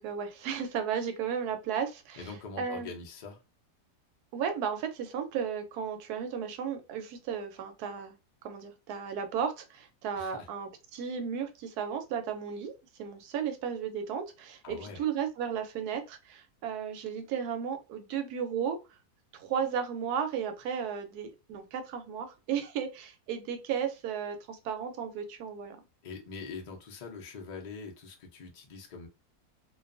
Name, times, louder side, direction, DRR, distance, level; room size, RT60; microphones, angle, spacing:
voice 1, 0.0-2.2 2.6-2.9 4.3-8.2 8.4-12.7 13.0-18.8 19.3-25.8, right 7 dB, 80° right, 1.1 m, -34 dB
voice 2, 2.2-3.4 10.2-10.5 14.6-15.0 26.0-29.1, left 4 dB, 75° left, 0.4 m, -43 dB
2.5 x 2.3 x 2.4 m
omnidirectional pair, 1.7 m